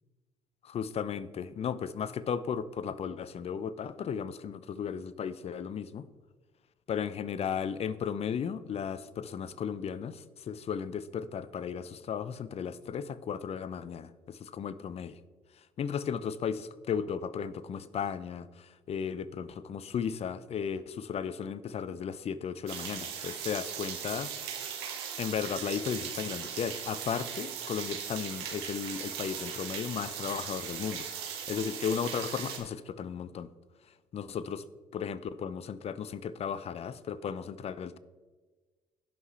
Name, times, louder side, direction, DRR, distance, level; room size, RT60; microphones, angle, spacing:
voice 1, 0.6-6.1 6.9-15.2 15.8-24.3 25.2-33.5 34.1-34.6 34.9-38.0, left 7 dB, 50° left, 15 dB, 0.7 m, -35 dB
sound 1, 22.7-32.6, right 8 dB, 85° right, 1.6 m, -38 dB
17.0 x 5.9 x 3.2 m, 1.3 s
hypercardioid pair, 55°, 13 cm